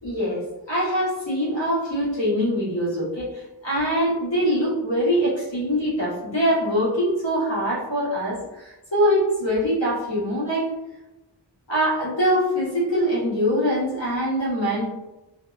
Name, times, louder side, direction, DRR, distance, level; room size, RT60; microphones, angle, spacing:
voice 1, 0.0-10.7 11.7-14.9, equal, 80° left, -8 dB, 1.2 m, -23 dB
2.6 x 2.1 x 2.4 m, 1.0 s
wide cardioid pair, 50°, 43 cm